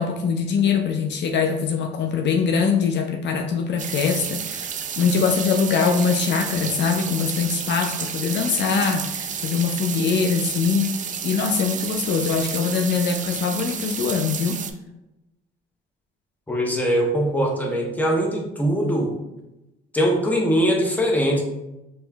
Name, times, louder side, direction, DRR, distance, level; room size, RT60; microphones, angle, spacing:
voice 1, 0.0-14.6, left 5 dB, 65° left, 4 dB, 0.4 m, -23 dB
sound 1, 3.8-14.7, right 7 dB, 40° right, 0.4 m, -31 dB
voice 2, 16.5-19.2 19.9-21.4, equal, 10° left, 0 dB, 0.8 m, -21 dB
4.3 x 3.0 x 2.3 m, 0.95 s
cardioid pair, 90°, 20 cm